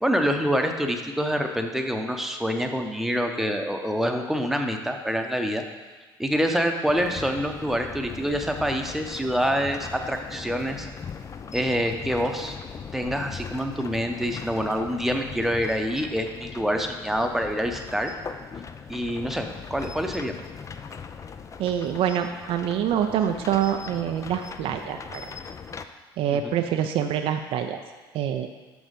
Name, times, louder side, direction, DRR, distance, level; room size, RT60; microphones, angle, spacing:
voice 1, 0.0-5.6 6.2-10.9 11.5-12.6 12.9-18.1 18.9-20.3 26.3-26.5, equal, ahead, 4 dB, 0.9 m, -26 dB
sound 1, 6.9-25.9, left 6 dB, 25° left, 0.5 m, -40 dB
voice 2, 21.6-25.3 26.2-27.8 28.1-28.5, right 9 dB, 50° right, 6 dB, 0.5 m, -26 dB
6.2 x 6.1 x 5.2 m, 1.3 s
figure-of-eight pair, 60°, 12 cm